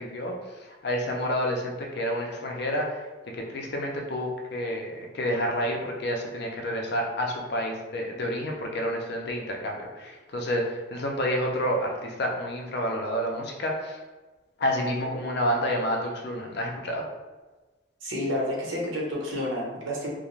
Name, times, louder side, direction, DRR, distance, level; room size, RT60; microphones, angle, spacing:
voice 1, 0.0-14.0 14.6-17.0, equal, 60° left, 1 dB, 0.5 m, -29 dB
voice 2, 18.0-20.1, left 1 dB, 80° right, -3 dB, 0.8 m, -30 dB
2.4 x 2.1 x 3.0 m, 1.2 s
head